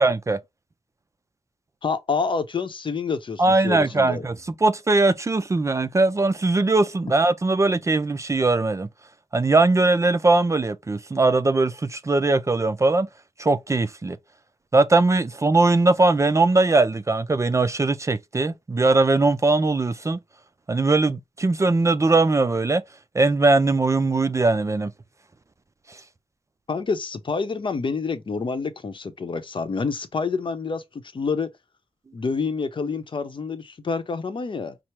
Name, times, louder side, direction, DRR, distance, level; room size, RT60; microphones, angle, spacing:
voice 1, 0.0-0.4 3.4-8.9 9.3-13.1 13.4-14.2 14.7-20.2 20.7-22.8 23.1-24.9, right 3 dB, 30° right, 0.4 m, -20 dB
voice 2, 1.8-4.3 26.7-31.5 32.1-34.8, left 4 dB, 50° left, 0.7 m, -28 dB
5.7 x 2.0 x 3.1 m
wide cardioid pair, 80°, 11 cm